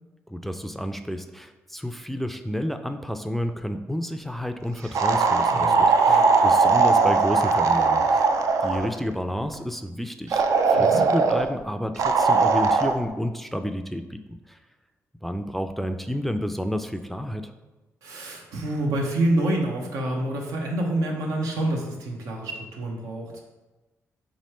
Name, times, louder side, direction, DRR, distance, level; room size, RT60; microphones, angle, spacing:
voice 1, 0.3-8.3 8.6-14.6 15.2-17.5, equal, 5° left, 7 dB, 0.3 m, -30 dB
sound 1, 4.9-8.9 10.3-11.5 12.0-12.9, right 4 dB, 75° right, 0.4 m, -19 dB
voice 2, 5.5-6.3 10.7-11.0 18.0-23.4, right 1 dB, 90° right, 0 dB, 0.8 m, -27 dB
3.7 x 3.1 x 4.2 m, 1.1 s
cardioid pair, 65°, 6 cm